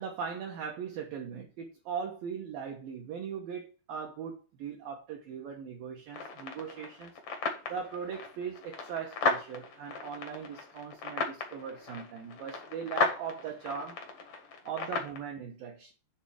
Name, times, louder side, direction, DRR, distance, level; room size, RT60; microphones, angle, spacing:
voice 1, 0.0-7.1 7.7-14.0 14.6-15.9, right 7 dB, 75° right, 2.1 m, -39 dB
sound 1, 6.1-15.2, left 3 dB, 70° left, 1.4 m, -36 dB
9.9 x 3.4 x 6.2 m
omnidirectional pair, 5.6 m